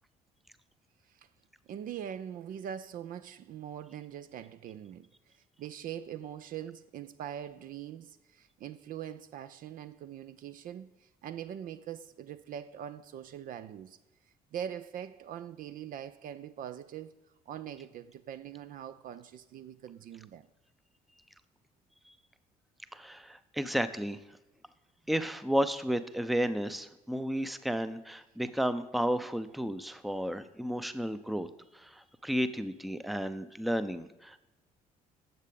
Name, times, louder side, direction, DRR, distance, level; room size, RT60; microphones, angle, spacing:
voice 1, 1.7-14.0 14.5-20.5, right 9 dB, 45° right, 0.5 m, -42 dB
voice 2, 22.9-24.2 25.1-31.5 31.7-34.4, equal, ahead, 0.6 m, -32 dB
10.5 x 7.4 x 5.2 m
figure-of-eight pair, 45°, 19 cm